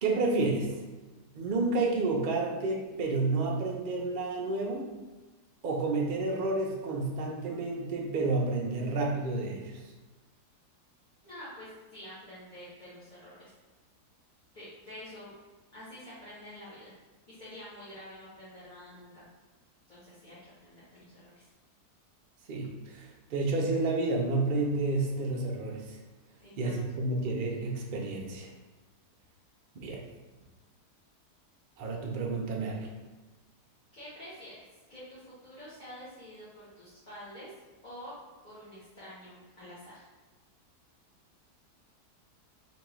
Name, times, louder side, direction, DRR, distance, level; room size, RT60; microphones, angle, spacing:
voice 1, 0.0-0.7 1.3-4.9 5.6-9.8 22.5-26.0 26.6-28.5 29.8-30.0 31.8-32.9, right 3 dB, 80° right, -1 dB, 0.4 m, -30 dB
voice 2, 11.2-13.5 14.5-15.3 15.7-16.9 17.3-19.2 19.9-21.5 26.4-27.0 33.9-37.5 37.8-38.1 38.4-40.1, equal, 30° left, -11 dB, 1.1 m, -48 dB
3.5 x 3.1 x 3.0 m, 1.2 s
omnidirectional pair, 1.7 m